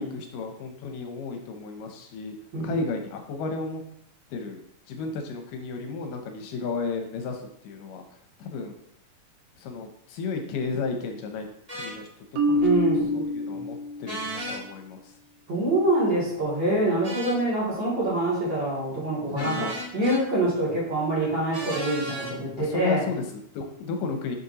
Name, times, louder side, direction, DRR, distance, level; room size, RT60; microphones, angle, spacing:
voice 1, 0.0-2.4 2.6-3.8 4.3-8.0 8.4-8.8 9.6-11.5 11.7-15.1 19.3-19.7 22.6-24.4, left 4 dB, 80° left, 4 dB, 2.3 m, -33 dB
sound 1, 11.7-11.9 14.0-14.6 17.0-17.4 19.3-20.2 21.5-22.3, right 1 dB, 15° right, 1.6 m, -34 dB
Marimba xylophone, 12.4-14.4, left 1 dB, 80° right, 2.4 m, -26 dB
voice 2, 12.6-13.6 15.5-19.7 19.9-23.0, right 2 dB, 35° right, -7 dB, 2.9 m, -25 dB
6.6 x 6.0 x 2.8 m, 0.71 s
omnidirectional pair, 3.9 m